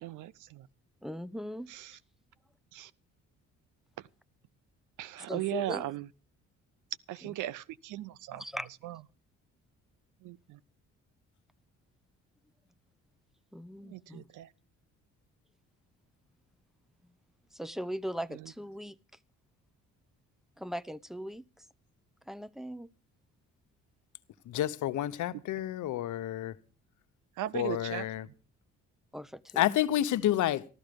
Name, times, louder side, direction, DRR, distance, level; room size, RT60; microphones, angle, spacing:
voice 1, 0.0-0.7 1.7-2.0 2.7-2.9 5.0-6.1 7.1-8.4 8.8-8.9 10.2-10.6 13.8-14.5 27.4-28.0, right 14 dB, 85° right, 0.7 m, -37 dB
voice 2, 1.0-1.7 5.3-5.9 7.2-7.3 8.3-8.7 13.5-14.3 17.5-19.0 20.6-21.4 22.3-22.9 29.1-29.6, equal, ahead, 0.6 m, -39 dB
voice 3, 24.5-26.5 27.5-28.3 29.6-30.6, left 12 dB, 75° left, 0.9 m, -29 dB
13.5 x 13.0 x 5.2 m
cardioid pair, 90°, 30 cm